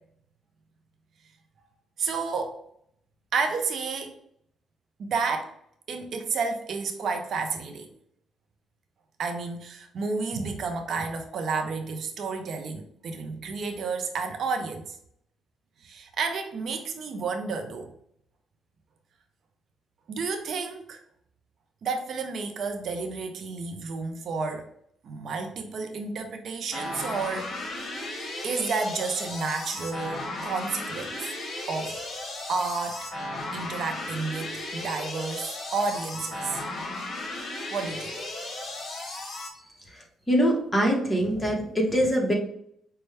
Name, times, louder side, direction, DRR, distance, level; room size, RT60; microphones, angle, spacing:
voice 1, 2.0-2.6 3.3-4.1 5.0-5.5 5.9-7.9 9.2-14.9 15.8-17.9 20.1-21.0 21.8-24.7 25.0-27.7 28.4-31.3 31.7-32.0 32.5-33.1 33.5-36.6 37.7-38.1, right 4 dB, 60° right, 5 dB, 0.6 m, -31 dB
sound 1, 26.7-39.5, left 2 dB, 45° left, 1.3 m, -35 dB
voice 2, 40.3-42.3, equal, 15° left, 0 dB, 1.2 m, -23 dB
5.2 x 2.2 x 3.3 m, 0.70 s
cardioid pair, 90°, 0 cm